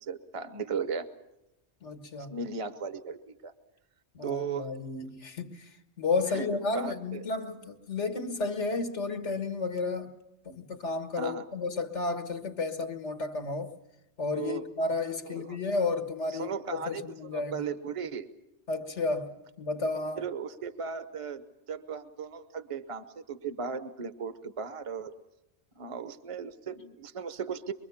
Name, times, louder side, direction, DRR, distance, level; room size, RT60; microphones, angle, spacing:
voice 1, 0.0-1.1 2.3-3.5 4.2-4.7 6.3-7.3 11.2-11.5 14.3-14.7 15.2-15.6 16.3-17.0 17.3-18.3 20.2-25.1 25.8-27.7, right 6 dB, 30° right, 0.9 m, -36 dB
voice 2, 1.8-2.3 4.1-5.7 6.0-10.1 10.5-13.7 14.2-17.7 18.7-20.2, left 3 dB, 85° left, 2.0 m, -32 dB
24.0 x 23.5 x 7.2 m
omnidirectional pair, 1.2 m